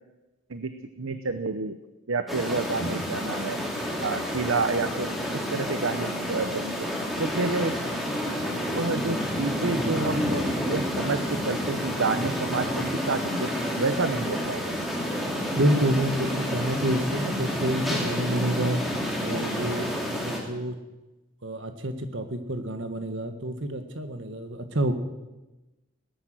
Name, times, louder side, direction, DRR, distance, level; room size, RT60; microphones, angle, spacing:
voice 1, 0.5-1.8 2.1-3.6 4.0-6.9 7.2-7.7 8.2-8.4 8.7-13.5 13.8-14.7, right 3 dB, 85° right, 9 dB, 0.9 m, -29 dB
sound 1, 2.3-20.4, equal, ahead, 2.6 m, -29 dB
voice 2, 15.6-18.8 19.2-20.8 21.4-24.9, right 1 dB, 65° right, 8 dB, 1.6 m, -28 dB
18.5 x 10.5 x 7.6 m, 1.1 s
head